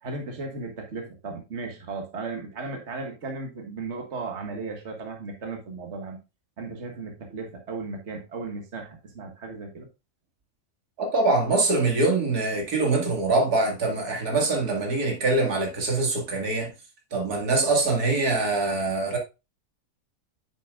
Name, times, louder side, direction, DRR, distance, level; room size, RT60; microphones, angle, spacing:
voice 1, 0.0-6.2 6.6-9.9, right 3 dB, 50° right, 1.7 m, -36 dB
voice 2, 11.0-16.7 17.1-19.2, right 3 dB, 80° right, 2.5 m, -24 dB
9.0 x 7.0 x 2.4 m
omnidirectional pair, 1.6 m